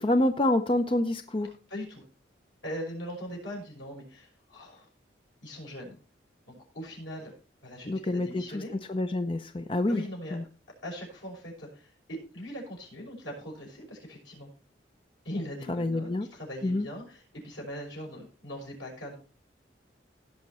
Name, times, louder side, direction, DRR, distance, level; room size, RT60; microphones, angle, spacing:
voice 1, 0.0-1.5 7.9-8.4 8.9-10.0 10.3-10.4 15.7-16.3 16.6-16.9, left 1 dB, 30° left, 8 dB, 0.6 m, -27 dB
voice 2, 1.7-2.0 2.6-4.9 5.4-5.9 6.5-7.3 7.6-8.7 9.9-10.4 10.8-14.5 15.2-19.1, equal, 90° left, -1 dB, 5.8 m, -40 dB
17.0 x 5.8 x 4.2 m, 0.36 s
head